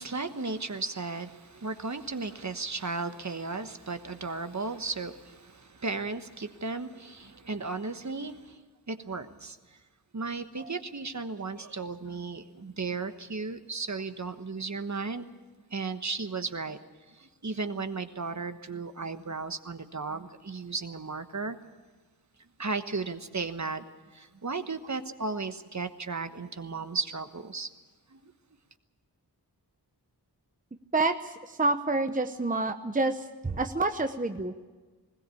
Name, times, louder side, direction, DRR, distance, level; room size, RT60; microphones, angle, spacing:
voice 1, 0.0-8.6 8.9-9.6 10.1-15.2 15.7-16.8 17.1-21.6 22.6-23.8 24.1-27.7 28.1-28.3, right 4 dB, 45° right, 9 dB, 1.3 m, -35 dB
voice 2, 30.9-34.5, right 2 dB, 20° right, 8 dB, 0.9 m, -28 dB
20.5 x 17.5 x 8.4 m, 1.3 s
wide cardioid pair, 65°, 41 cm